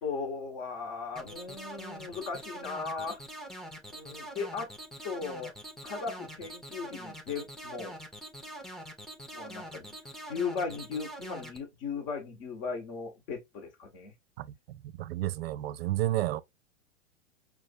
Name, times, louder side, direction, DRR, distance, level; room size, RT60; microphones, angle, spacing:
voice 1, 0.0-3.2 3.9-4.7 5.0-5.5 5.8-8.0 9.3-9.9 10.3-14.1, left 5 dB, 50° left, 1.4 m, -37 dB
sound 1, 1.1-11.6, right 1 dB, ahead, 0.6 m, -44 dB
voice 2, 15.0-16.4, right 15 dB, 60° right, 0.4 m, -30 dB
5.1 x 2.5 x 2.5 m
hypercardioid pair, 105°, 35 cm